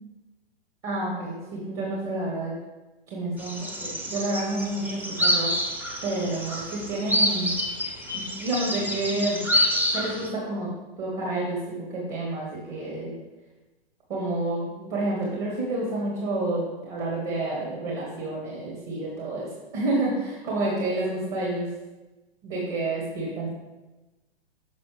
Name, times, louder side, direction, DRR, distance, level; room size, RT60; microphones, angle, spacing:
voice 1, 0.8-2.5 3.1-5.5 6.0-7.5 8.1-9.4 9.9-10.7 11.0-13.1 14.1-21.7 22.4-23.5, right 2 dB, 40° right, -5 dB, 2.0 m, -29 dB
sound 1, 3.4-10.3, equal, 5° right, 0.6 m, -27 dB
6.8 x 5.9 x 3.4 m, 1.1 s
figure-of-eight pair, 115°, 31 cm